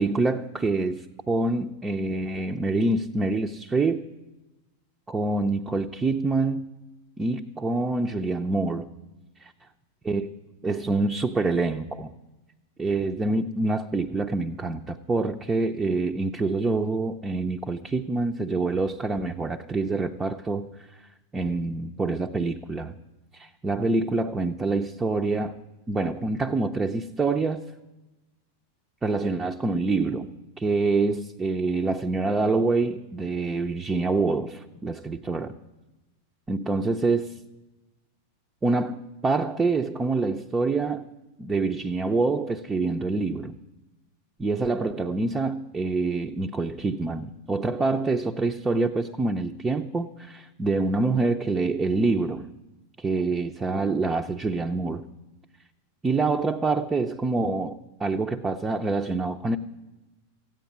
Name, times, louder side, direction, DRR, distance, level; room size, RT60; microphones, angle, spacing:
voice 1, 0.0-4.0 5.1-6.7 7.2-8.9 9.4-9.5 10.1-10.3 10.6-12.1 12.8-20.7 21.3-22.9 23.3-25.5 25.9-27.6 29.0-30.3 30.6-35.5 36.5-37.4 38.6-41.1 41.4-43.6 44.4-52.5 53.0-55.0 56.0-59.6, right 3 dB, 15° right, 4 dB, 0.6 m, -26 dB
14.5 x 9.1 x 9.4 m, 1.1 s
figure-of-eight pair, 90°, 0 cm